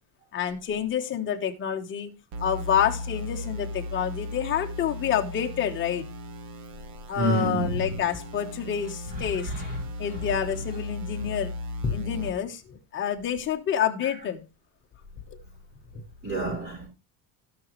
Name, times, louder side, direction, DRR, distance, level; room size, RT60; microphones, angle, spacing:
voice 1, 0.3-2.1 2.4-6.1 7.1-9.5 10.0-11.6 11.8-14.4 15.3-15.4 15.9-16.0, left 8 dB, 25° left, 1.2 m, -28 dB
sound 1, 2.3-12.3, left 1 dB, 85° right, 1.9 m, -37 dB
voice 2, 7.1-8.0 9.0-9.8 10.1-10.2 10.5-10.6 16.2-16.9, right 1 dB, 20° right, 5.8 m, -29 dB
17.0 x 6.1 x 3.1 m
cardioid pair, 170°, 48 cm